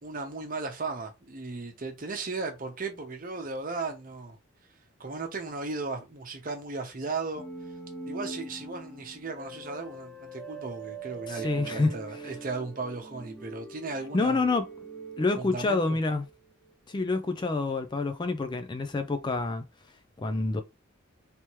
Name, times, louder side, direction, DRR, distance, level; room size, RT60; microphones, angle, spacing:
voice 1, 0.0-4.4 5.0-7.5 8.1-14.4 15.4-15.8, right 3 dB, 45° right, 0.9 m, -36 dB
sound 1, 7.4-16.3, right 3 dB, 5° left, 0.9 m, -42 dB
voice 2, 11.3-11.9 14.1-14.7 15.2-16.2 16.9-19.6 20.2-20.6, left 3 dB, 20° left, 0.3 m, -27 dB
3.4 x 2.9 x 3.0 m
head